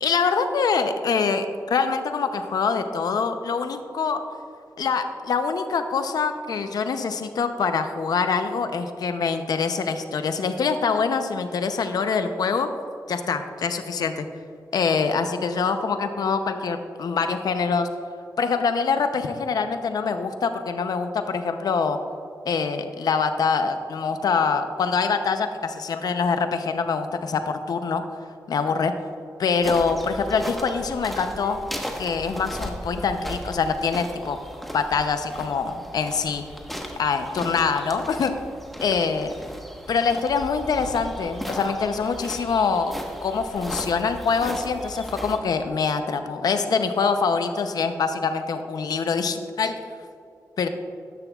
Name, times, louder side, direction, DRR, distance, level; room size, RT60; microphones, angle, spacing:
voice 1, 0.0-4.2 4.8-12.7 13.1-14.3 14.7-17.9 18.4-22.0 22.5-28.0 28.5-28.9 29.4-31.6 32.0-34.4 34.7-36.4 37.0-38.3 38.8-39.3 39.9-42.9 43.2-49.8 50.6-50.7, left 5 dB, 75° left, 8 dB, 0.7 m, -24 dB
sound 1, 29.6-45.4, equal, ahead, 1.2 m, -36 dB
12.5 x 10.5 x 2.4 m, 2.5 s
cardioid pair, 55°, 7 cm